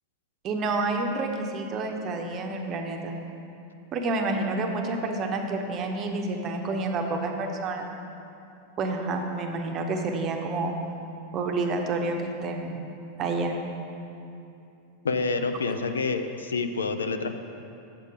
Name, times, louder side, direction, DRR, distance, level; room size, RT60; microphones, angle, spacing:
voice 1, 0.4-3.2 3.9-7.9 8.8-10.7 11.3-12.8 13.2-13.6, right 3 dB, 35° right, 3 dB, 0.8 m, -29 dB
voice 2, 15.0-17.3, left 4 dB, 70° left, 8 dB, 0.4 m, -28 dB
7.5 x 6.6 x 4.9 m, 2.7 s
figure-of-eight pair, 90°, 0 cm